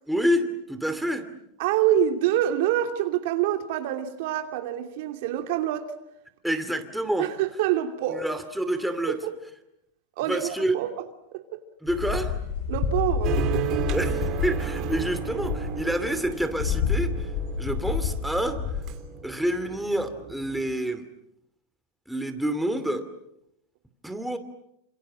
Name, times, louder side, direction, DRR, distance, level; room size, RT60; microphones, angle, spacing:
voice 1, 0.1-1.3 6.4-7.3 8.1-9.2 10.3-10.8 11.8-12.4 13.9-17.3 17.6-18.6 19.2-21.0 22.1-23.1 24.0-24.4, right 1 dB, ahead, 2.6 m, -28 dB
voice 2, 1.6-5.9 7.2-8.3 9.1-9.3 10.2-11.6 12.7-13.4, right 11 dB, 60° right, 2.8 m, -26 dB
sound 1, 11.9-18.8, left 6 dB, 55° left, 8.0 m, -29 dB
sound 2, 13.2-20.7, right 10 dB, 35° right, 3.2 m, -34 dB
29.0 x 27.0 x 7.6 m
supercardioid pair, 155°, 0 cm